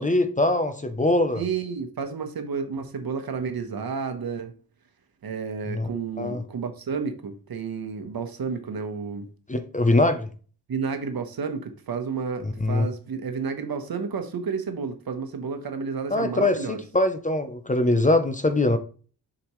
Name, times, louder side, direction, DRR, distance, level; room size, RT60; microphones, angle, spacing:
voice 1, 0.0-1.4 5.7-5.9 6.2-6.4 9.5-10.3 12.4-12.9 16.1-18.8, left 2 dB, 20° left, 0.6 m, -22 dB
voice 2, 1.3-4.5 5.2-9.3 10.7-16.8, right 5 dB, 60° right, 1.1 m, -31 dB
6.9 x 5.1 x 3.1 m
wide cardioid pair, 95°, 40 cm